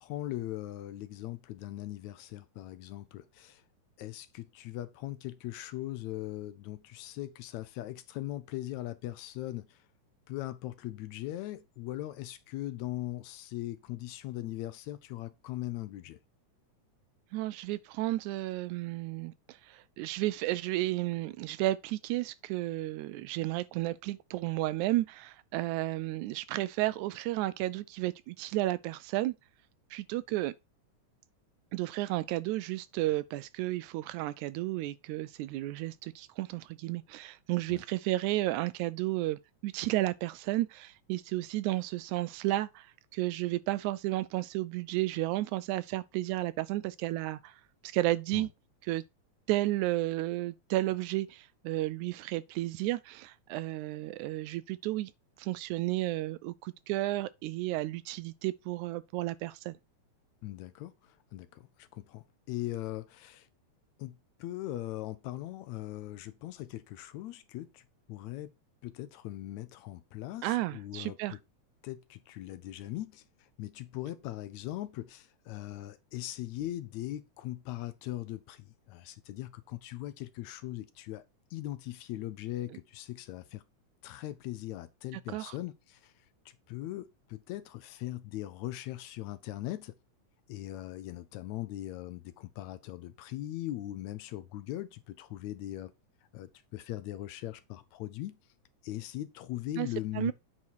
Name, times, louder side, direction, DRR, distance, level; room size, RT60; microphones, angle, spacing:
voice 1, 0.0-3.6 4.0-9.8 10.3-16.2 37.7-37.8 48.3-48.5 60.4-63.5 64.0-68.5 68.8-71.4 71.8-81.2 81.5-83.6 84.0-86.1 86.7-90.0 90.5-95.9 96.3-98.4 98.8-100.3, left 15 dB, 80° left, 1.9 m, -40 dB
voice 2, 17.3-19.3 19.7-29.4 29.9-30.5 31.7-42.9 43.1-47.6 47.8-48.5 48.9-49.0 49.5-55.1 55.4-59.8 70.4-71.4 85.3-85.5 99.8-99.9 100.2-100.3, right 17 dB, 85° right, 1.9 m, -32 dB
8.7 x 4.3 x 4.6 m
omnidirectional pair, 3.4 m